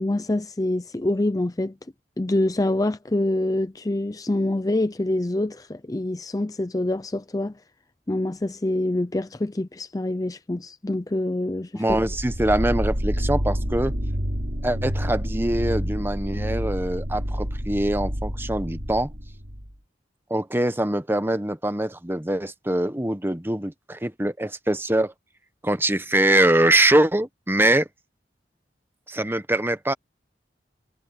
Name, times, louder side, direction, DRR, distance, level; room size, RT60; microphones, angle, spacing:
voice 1, 0.0-1.7 2.2-7.5 8.1-12.0, left 1 dB, 20° left, 0.5 m, -26 dB
voice 2, 11.7-14.0 14.6-19.1 20.3-25.1 25.6-27.9 29.1-29.9, right 1 dB, 15° right, 1.0 m, -23 dB
sound 1, 11.9-19.7, equal, 60° right, 5.0 m, -28 dB
head